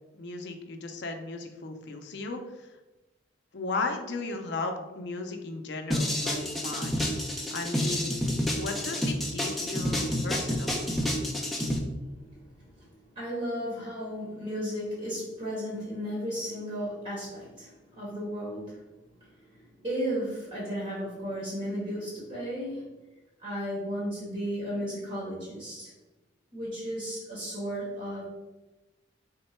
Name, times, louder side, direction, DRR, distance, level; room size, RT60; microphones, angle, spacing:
voice 1, 0.1-2.7 3.5-7.1 7.5-8.1 8.6-10.9, left 3 dB, 60° left, 5 dB, 0.5 m, -36 dB
sound 1, 5.9-11.8, equal, ahead, 0.4 m, -29 dB
voice 2, 12.1-18.8 19.2-22.9 23.4-25.9 26.5-28.2, equal, 35° right, -7 dB, 1.2 m, -35 dB
3.6 x 2.1 x 4.2 m, 1.0 s
head